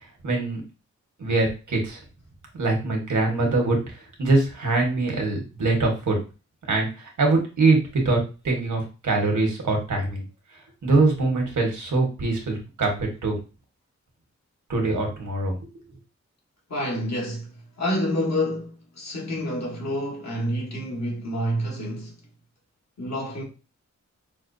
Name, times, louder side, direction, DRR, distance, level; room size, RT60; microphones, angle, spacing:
voice 1, 0.2-0.6 1.2-2.0 2.5-3.8 4.2-6.2 6.7-10.2 10.8-13.4 14.7-15.5, right 3 dB, 85° right, 1.4 m, -23 dB
voice 2, 16.7-22.1 23.0-23.4, equal, 65° left, 1.6 m, -28 dB
5.7 x 2.3 x 2.7 m
wide cardioid pair, 85°, 29 cm